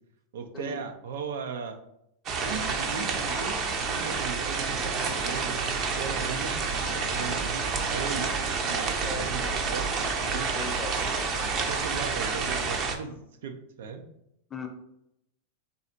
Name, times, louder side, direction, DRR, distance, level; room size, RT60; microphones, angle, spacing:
voice 1, 0.3-1.8 2.4-5.6 5.9-6.6 6.9-8.3 8.6-10.6 11.7-14.0, right 5 dB, 80° right, 7 dB, 0.5 m, -37 dB
sound 1, 2.3-13.0, right 4 dB, 35° right, 0.6 m, -29 dB
voice 2, 7.1-7.4 9.0-9.5 10.6-11.6 14.5-14.7, left 3 dB, 15° left, 4 dB, 0.7 m, -40 dB
4.0 x 2.4 x 4.3 m, 0.80 s
supercardioid pair, 135°, 0 cm